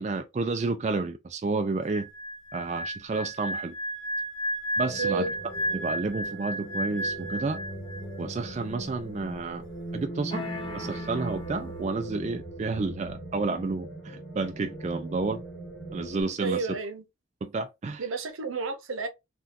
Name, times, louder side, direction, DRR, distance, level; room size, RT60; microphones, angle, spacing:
voice 1, 0.0-2.1 2.5-3.8 4.8-5.3 5.7-7.6 8.2-9.6 9.9-10.4 10.7-15.4 15.9-16.7 17.4-18.0, right 3 dB, 35° right, 0.3 m, -30 dB
sound 1, 1.8-8.2 8.5-8.7, equal, 80° left, 0.7 m, -33 dB
sound 2, 4.8-16.2, right 2 dB, 5° left, 1.3 m, -40 dB
voice 2, 5.0-5.3 16.4-17.0 18.0-19.1, right 4 dB, 90° right, 0.7 m, -31 dB
sound 3, 10.3-12.2, left 4 dB, 25° left, 0.6 m, -40 dB
3.5 x 2.3 x 2.5 m
head